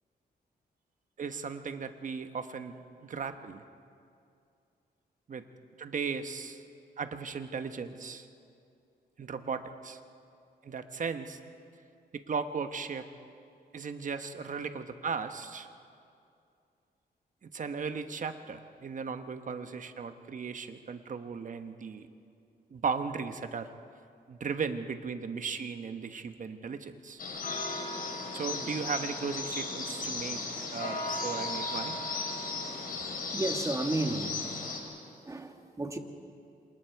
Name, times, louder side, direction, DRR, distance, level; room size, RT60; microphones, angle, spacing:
voice 1, 1.2-3.6 5.3-5.4 5.8-6.6 7.0-8.3 9.2-10.0 10.6-11.4 12.1-13.1 13.7-15.7 17.4-22.1 22.7-23.7 24.3-27.2 28.3-32.0, right 5 dB, 50° right, 8 dB, 1.2 m, -36 dB
sound 1, 27.2-34.8, left 3 dB, 60° left, 4.0 m, -35 dB
voice 2, 33.3-34.3 35.3-36.0, right 2 dB, 20° right, 5 dB, 1.7 m, -32 dB
27.5 x 27.0 x 4.7 m, 2.5 s
cardioid pair, 110°, 17 cm